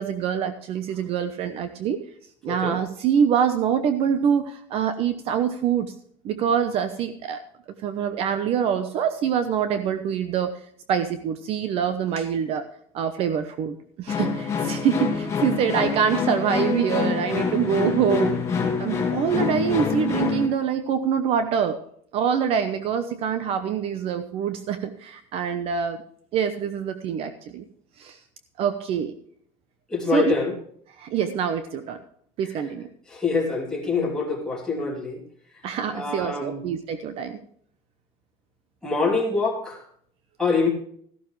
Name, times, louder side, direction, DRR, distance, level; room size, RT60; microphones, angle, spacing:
voice 1, 0.0-2.0 2.4-5.9 6.2-7.4 7.8-10.6 10.9-12.6 12.9-18.4 18.8-21.8 22.1-26.0 26.3-27.7 28.0-28.2 28.6-29.1 30.1-30.3 31.0-32.0 32.4-32.9 35.6-37.4, right 8 dB, 45° right, 10 dB, 0.9 m, -25 dB
voice 2, 2.5-2.8 29.9-30.5 33.1-35.2 35.9-36.6 38.8-39.9 40.4-40.7, left 4 dB, 5° left, -2 dB, 3.0 m, -25 dB
sound 1, 14.1-20.5, left 6 dB, 20° left, 2.6 m, -26 dB
14.0 x 12.5 x 3.2 m, 0.63 s
cardioid pair, 155°, 14 cm